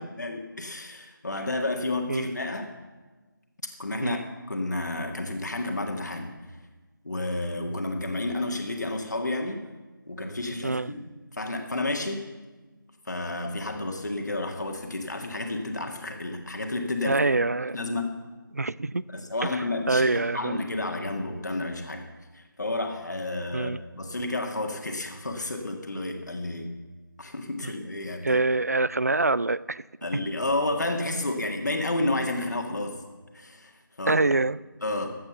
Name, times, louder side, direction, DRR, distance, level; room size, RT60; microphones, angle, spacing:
voice 1, 0.0-2.7 3.8-4.2 4.5-6.3 7.0-9.6 10.1-11.0 11.3-12.2 13.1-17.2 17.7-18.1 19.1-22.0 22.3-26.7 27.2-28.4 30.0-32.9 33.3-33.7 34.0-34.2 34.8-35.1, left 2 dB, 55° left, 3 dB, 1.8 m, -31 dB
voice 2, 17.0-17.8 18.5-19.0 19.4-19.5 19.9-20.6 23.5-23.8 27.6-27.7 28.2-29.8 34.1-34.6, right 3 dB, 45° right, 20 dB, 0.3 m, -25 dB
14.0 x 8.7 x 6.9 m, 1.3 s
figure-of-eight pair, 165°, 12 cm